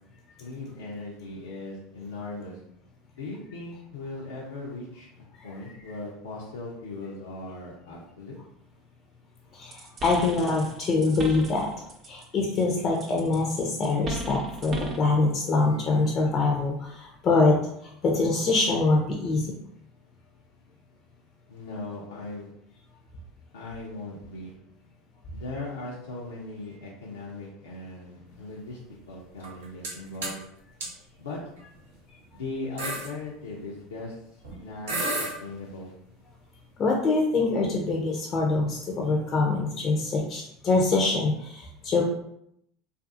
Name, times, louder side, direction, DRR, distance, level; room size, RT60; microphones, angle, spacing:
voice 1, 0.4-2.6 3.2-5.1 5.4-8.4 21.5-22.5 23.5-24.5 25.3-28.8 29.1-30.4 31.2-31.4 32.3-35.9, left 2 dB, 90° left, -5 dB, 0.5 m, -38 dB
voice 2, 9.5-11.7 12.1-19.6 36.8-42.0, left 3 dB, 45° left, 0 dB, 0.5 m, -24 dB
sound 1, 9.7-12.2 12.5-15.1, right 2 dB, 40° right, 0.6 m, -37 dB
sound 2, 29.4-29.9 30.2-30.4 30.8-30.9 31.7-32.0 32.3-32.4 32.8-33.1 34.4-34.6 34.9-35.3, right 2 dB, 85° right, 0.8 m, -30 dB
2.6 x 2.5 x 2.5 m, 0.75 s
hypercardioid pair, 90°, 0 cm